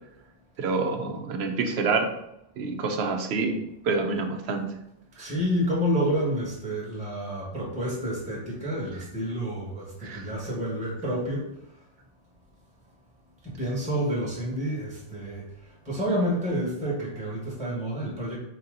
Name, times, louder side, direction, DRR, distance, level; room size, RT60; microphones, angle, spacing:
voice 1, 0.6-2.1 2.6-3.6 3.8-4.7 10.0-10.3, right 4 dB, 65° right, 5 dB, 0.8 m, -27 dB
voice 2, 5.2-11.6 13.4-18.4, equal, 5° right, -4 dB, 1.2 m, -29 dB
3.9 x 2.8 x 3.7 m, 0.83 s
omnidirectional pair, 1.3 m